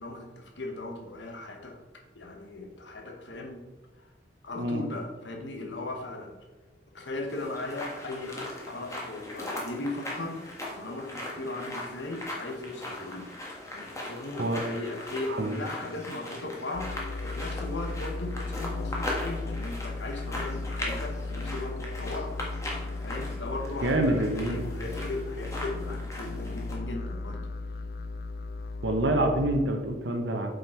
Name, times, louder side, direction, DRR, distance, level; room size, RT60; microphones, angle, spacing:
voice 1, 0.0-1.8 2.1-3.6 4.0-4.1 4.4-6.4 6.9-10.4 10.8-13.3 13.7-22.5 22.8-27.4, left 2 dB, 75° left, 2 dB, 1.2 m, -37 dB
sound 1, 7.3-26.8, left 1 dB, 15° left, 1.5 m, -39 dB
sound 2, 16.7-29.7, left 3 dB, 55° left, 0.4 m, -36 dB
voice 2, 23.8-24.7 28.8-30.6, right 1 dB, 75° right, 4 dB, 0.9 m, -27 dB
7.9 x 5.2 x 4.4 m, 1.2 s
head